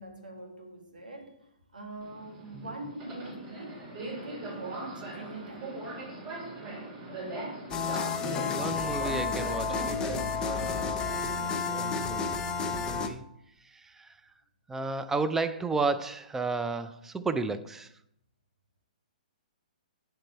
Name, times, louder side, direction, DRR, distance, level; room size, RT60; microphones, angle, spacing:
voice 1, 0.0-5.7, right 1 dB, 85° right, 1.8 m, -43 dB
Subway metro underground, 2.0-11.6, right 2 dB, 35° right, 2.7 m, -40 dB
sound 1, 7.7-13.1, left 5 dB, 20° left, 0.7 m, -31 dB
voice 2, 8.5-11.1 11.7-13.2 13.6-14.2 14.7-17.9, right 3 dB, 10° right, 0.4 m, -33 dB
9.0 x 5.2 x 4.4 m
hypercardioid pair, 130°, 5 cm